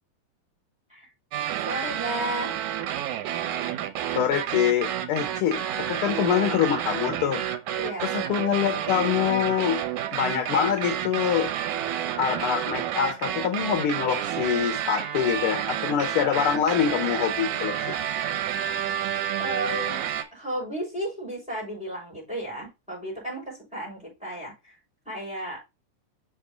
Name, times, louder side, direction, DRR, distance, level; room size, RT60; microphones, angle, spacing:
sound 1, 1.3-20.2, right 10 dB, 75° right, 2.1 m, -30 dB
voice 1, 1.7-2.6 7.8-8.1 19.4-20.0 20.3-24.7 25.0-25.6, right 1 dB, ahead, 4.6 m, -33 dB
voice 2, 4.1-7.4 8.0-9.8 10.1-11.5 12.2-17.7, left 9 dB, 80° left, 1.2 m, -25 dB
6.1 x 5.2 x 3.8 m
omnidirectional pair, 3.7 m